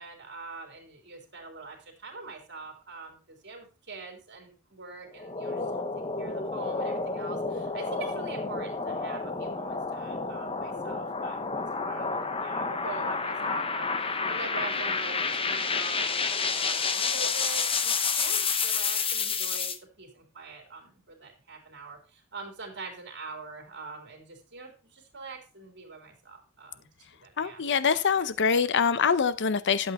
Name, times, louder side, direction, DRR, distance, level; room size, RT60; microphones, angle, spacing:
voice 1, 0.0-5.7 6.0-19.7 20.0-26.9 27.2-27.6 27.9-28.7, right 4 dB, 55° right, 2 dB, 3.5 m, -44 dB
sound 1, 5.2-19.8, left 4 dB, 25° left, 0.9 m, -30 dB
voice 2, 27.4-29.9, left 6 dB, 55° left, 15 dB, 0.7 m, -24 dB
12.0 x 8.1 x 4.1 m, 0.34 s
head